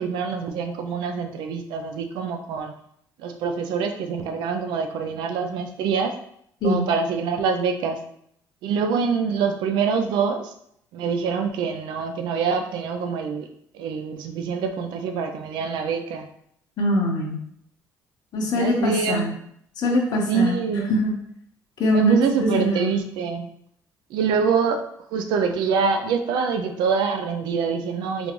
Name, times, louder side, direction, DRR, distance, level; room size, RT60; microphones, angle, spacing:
voice 1, 0.0-2.7 3.2-6.1 6.6-8.0 8.6-10.5 10.9-13.5 13.7-16.3 18.5-19.3 20.3-20.9 21.9-23.5 24.1-28.3, right 5 dB, 80° right, 6 dB, 0.4 m, -25 dB
voice 2, 16.8-17.4 18.3-19.3 19.8-20.5 20.9-21.1 21.8-22.9, equal, 60° left, 0 dB, 0.9 m, -22 dB
3.7 x 2.5 x 3.0 m, 0.70 s
cardioid pair, 85°, 8 cm